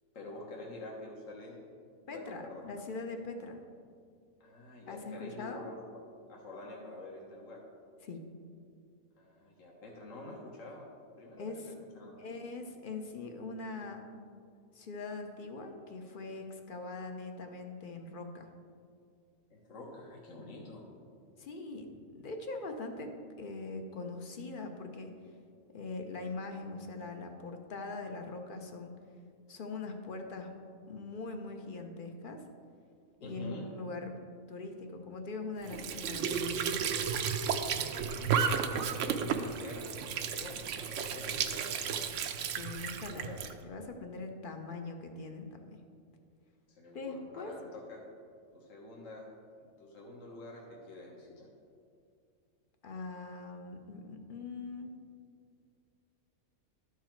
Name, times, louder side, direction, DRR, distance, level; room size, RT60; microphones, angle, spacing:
voice 1, 0.1-1.6 2.1-2.8 4.4-5.8 6.3-7.6 9.2-10.9 11.2-12.2 19.5-20.9 33.2-33.7 37.9-39.9 40.2-42.2 43.2-43.4 46.8-48.0 48.5-49.3 49.6-51.5, left 2 dB, 60° left, -2 dB, 1.5 m, -47 dB
voice 2, 2.1-3.6 4.9-5.7 8.0-8.2 11.4-11.8 12.2-14.0 14.7-18.5 21.4-25.1 25.7-29.0 29.5-30.5 30.9-32.4 33.2-34.2 34.5-36.9 42.6-43.3 43.6-45.8 46.9-47.5 52.8-54.9, left 3 dB, 45° left, 4 dB, 0.7 m, -42 dB
Squeak / Sink (filling or washing) / Trickle dribble, 35.6-43.5, right 7 dB, 65° right, 0.8 m, -33 dB
12.0 x 4.8 x 4.5 m, 2.3 s
omnidirectional pair, 1.5 m